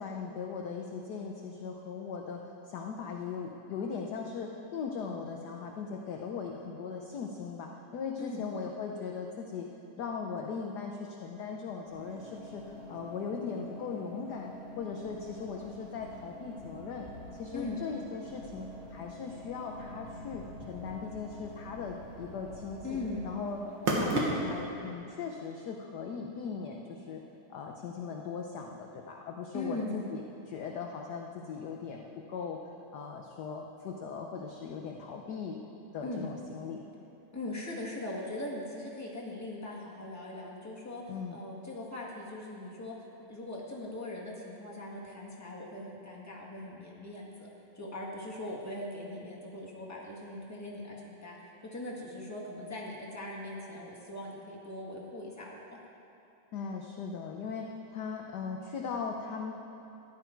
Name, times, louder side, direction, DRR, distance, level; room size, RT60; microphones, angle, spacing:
voice 1, 0.0-9.7 10.0-17.1 17.3-23.0 23.2-23.6 23.9-27.2 27.5-32.6 32.9-35.6 35.9-36.9 41.1-41.4 56.5-59.5, left 5 dB, 65° left, 1 dB, 1.1 m, -39 dB
sound 1, 11.9-24.7, right 1 dB, 75° right, 2.3 m, -40 dB
voice 2, 22.8-23.2 29.5-29.9 36.0-36.3 37.3-41.0 41.3-43.0 43.3-47.5 47.7-55.8, left 2 dB, 10° left, -4 dB, 1.6 m, -40 dB
14.5 x 10.5 x 4.6 m, 2.9 s
omnidirectional pair, 2.4 m